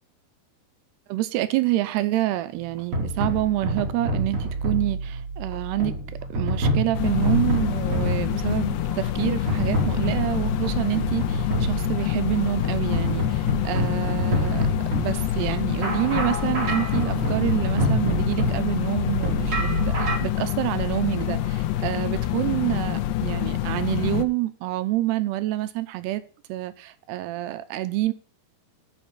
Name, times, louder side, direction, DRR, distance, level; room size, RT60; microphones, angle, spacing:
voice 1, 1.1-6.0 6.3-14.7 14.9-26.2 26.5-28.1, right 16 dB, 80° right, 2.7 m, -27 dB
sound 1, 2.6-20.2, right 1 dB, 35° right, 3.2 m, -28 dB
sound 2, 6.9-24.2, left 12 dB, 85° left, 3.0 m, -26 dB
8.8 x 7.3 x 8.5 m
omnidirectional pair, 4.9 m